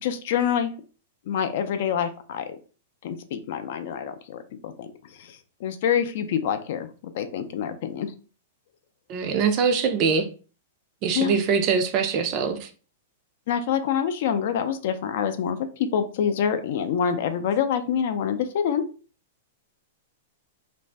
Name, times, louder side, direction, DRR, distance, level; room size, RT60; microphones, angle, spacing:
voice 1, 0.0-0.7 1.3-2.5 3.0-4.9 5.2-8.1 11.1-11.4 13.5-18.8, left 8 dB, 55° left, 0.4 m, -26 dB
voice 2, 9.1-10.3 11.0-12.7, right 6 dB, 35° right, 0.4 m, -23 dB
2.5 x 2.0 x 3.2 m
supercardioid pair, 155°, 0 cm